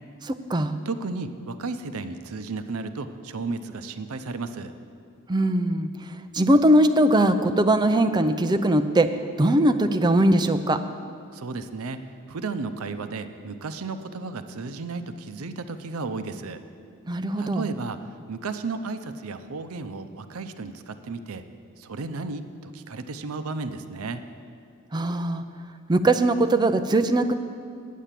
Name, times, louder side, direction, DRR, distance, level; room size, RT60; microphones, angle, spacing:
voice 1, 0.2-0.8 5.3-5.9 6.3-9.1 9.4-10.8 17.1-17.7 24.9-25.4 25.9-27.3, right 1 dB, 20° right, 9 dB, 0.4 m, -20 dB
voice 2, 0.9-4.7 11.3-16.6 17.4-18.0 18.3-21.4 21.8-24.2, right 3 dB, 85° right, 10 dB, 0.6 m, -33 dB
9.0 x 8.4 x 7.4 m, 2.3 s
head